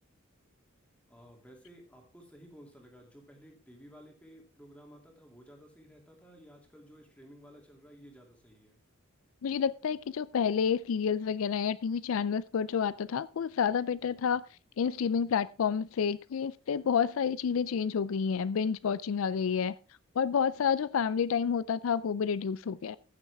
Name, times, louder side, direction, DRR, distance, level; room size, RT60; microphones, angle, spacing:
voice 1, 1.1-8.8 14.0-14.4, equal, 5° left, 1 dB, 2.5 m, -54 dB
voice 2, 9.4-14.4 14.8-19.7 20.2-23.0, left 7 dB, 75° left, 18 dB, 0.4 m, -29 dB
15.0 x 7.2 x 3.4 m, 0.33 s
head